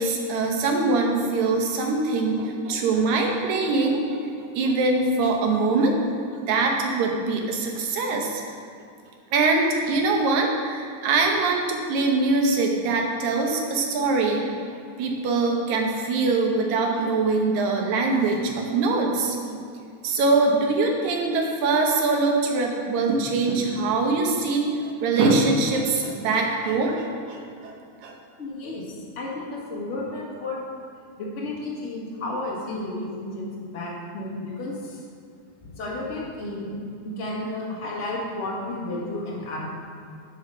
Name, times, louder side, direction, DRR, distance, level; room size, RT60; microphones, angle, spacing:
voice 1, 0.0-6.0 6.4-8.4 9.3-19.6 20.0-27.8 28.0-28.1, right 3 dB, 75° right, 1 dB, 2.3 m, -23 dB
voice 2, 28.4-30.6 31.2-35.0 35.6-39.6, left 2 dB, 35° left, -4 dB, 1.2 m, -32 dB
9.7 x 4.8 x 6.2 m, 2.3 s
omnidirectional pair, 3.4 m